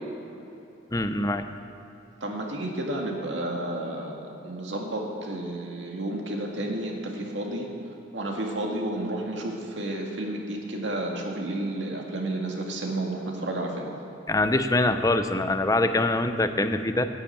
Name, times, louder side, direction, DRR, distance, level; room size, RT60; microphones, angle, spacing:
voice 1, 0.9-1.4 14.3-17.0, left 2 dB, 20° left, 9 dB, 0.6 m, -24 dB
voice 2, 2.2-7.7 8.1-13.9, right 1 dB, 70° right, 0 dB, 2.1 m, -31 dB
10.5 x 9.8 x 8.5 m, 2.9 s
head